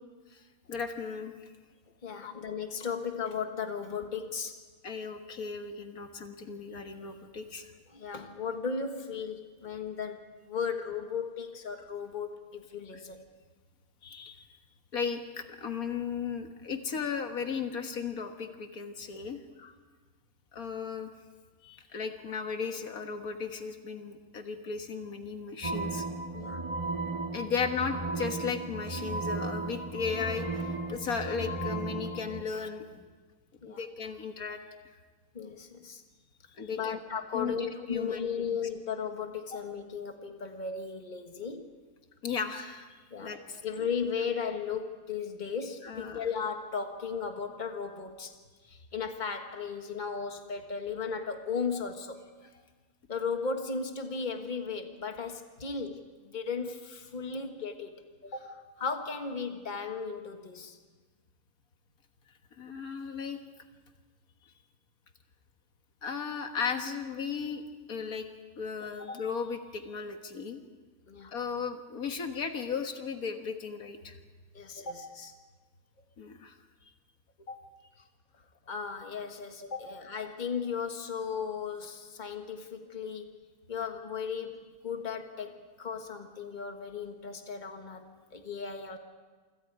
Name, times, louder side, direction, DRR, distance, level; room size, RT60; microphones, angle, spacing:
voice 1, 0.7-1.5 2.2-2.3 4.8-7.7 12.9-13.0 14.0-14.5 14.9-19.4 20.5-21.1 21.6-26.1 27.3-33.0 33.7-34.6 36.6-37.0 37.3-38.4 39.5-39.6 42.2-43.9 45.8-46.3 62.6-63.4 66.0-67.6 67.9-68.3 68.6-70.6 71.3-74.2 76.2-76.5 77.5-77.6 79.7-79.8, left 6 dB, 80° left, 5 dB, 1.9 m, -36 dB
voice 2, 2.0-4.5 7.9-13.2 19.6-19.7 26.3-26.6 33.6-33.8 35.3-36.0 36.7-41.7 43.1-43.3 43.6-48.3 48.7-52.2 53.1-57.9 58.2-60.8 71.1-71.3 74.5-75.3 78.7-83.3 83.7-89.0, left 5 dB, 30° left, 5 dB, 1.7 m, -36 dB
sound 1, 25.6-32.4, right 2 dB, 20° right, 1.8 m, -35 dB
28.0 x 25.5 x 4.8 m, 1.4 s
omnidirectional pair, 1.5 m